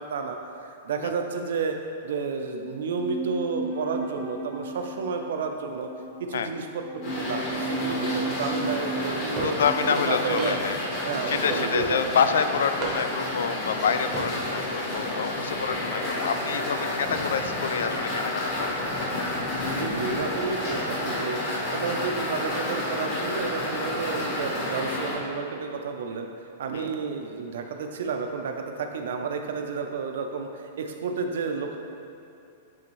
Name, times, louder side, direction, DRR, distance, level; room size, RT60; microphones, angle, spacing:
voice 1, 0.0-1.8 2.0-5.9 6.3-10.6 11.0-12.0 19.7-26.3 26.6-31.8, right 5 dB, 60° right, 4 dB, 0.5 m, -31 dB
sound 1, 2.6-12.0 12.2-12.3, right 2 dB, 50° left, 0.9 m, -36 dB
sound 2, 7.0-25.1, left 1 dB, 30° left, 1.1 m, -30 dB
voice 2, 9.4-10.8 11.3-19.1 26.7-26.9, left 6 dB, 85° left, 10 dB, 0.3 m, -27 dB
sound 3, 9.4-9.7 10.4-10.8 11.5-12.0 12.8-13.3 14.0-14.3, right 3 dB, 20° right, 0.7 m, -34 dB
8.6 x 3.5 x 3.1 m, 2.7 s
supercardioid pair, 180°, 0 cm